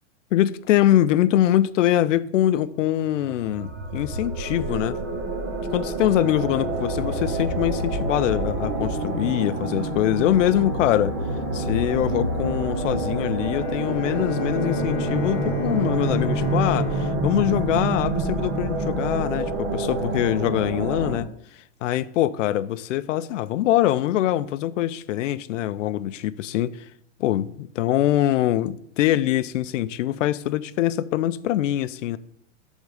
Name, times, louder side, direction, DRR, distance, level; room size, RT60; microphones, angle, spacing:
voice 1, 0.3-5.0 5.7-11.2 11.5-21.3 21.8-26.8 27.2-32.2, left 13 dB, 75° left, 0.5 m, -23 dB
sound 1, 3.1-21.2, right 2 dB, 20° right, 0.3 m, -27 dB
Bowed string instrument, 13.3-18.9, left 9 dB, 55° left, 0.9 m, -35 dB
8.3 x 3.7 x 6.4 m
supercardioid pair, 165°, 37 cm